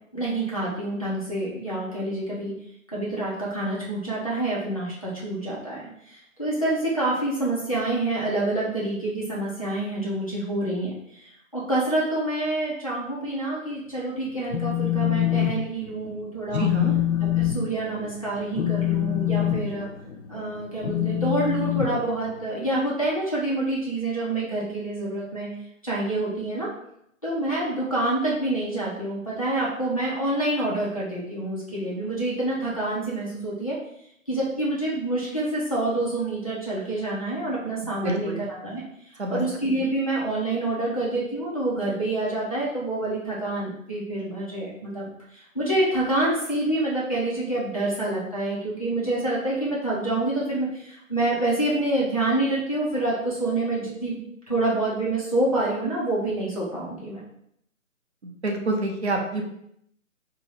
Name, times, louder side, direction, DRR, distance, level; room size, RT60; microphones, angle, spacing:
voice 1, 0.1-2.5 2.9-10.9 11.2-16.7 17.2-19.9 20.3-25.5 25.8-26.7 27.2-33.8 34.3-38.8 39.3-54.1 54.5-57.2, right 2 dB, 25° left, -7 dB, 0.6 m, -27 dB
Telephone, 14.3-15.5 15.9-16.2 16.5-22.6, left 12 dB, 85° left, 0.7 m, -25 dB
voice 2, 16.5-17.0 38.0-38.4 39.2-39.4 58.2-59.4, right 2 dB, 55° right, 2 dB, 0.7 m, -27 dB
2.8 x 2.7 x 4.1 m, 0.74 s
hypercardioid pair, 180°, 40 cm